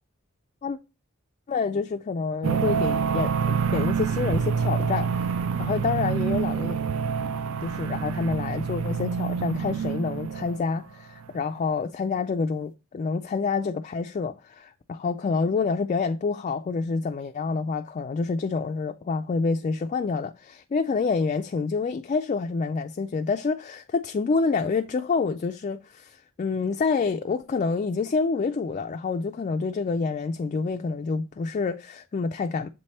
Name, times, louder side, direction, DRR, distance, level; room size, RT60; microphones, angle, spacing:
voice 1, 1.5-5.1 5.6-6.8 7.6-32.7, left 4 dB, 35° left, 0.3 m, -27 dB
sound 1, 2.4-10.7, right 6 dB, 70° right, 0.4 m, -27 dB
7.5 x 3.2 x 4.2 m
head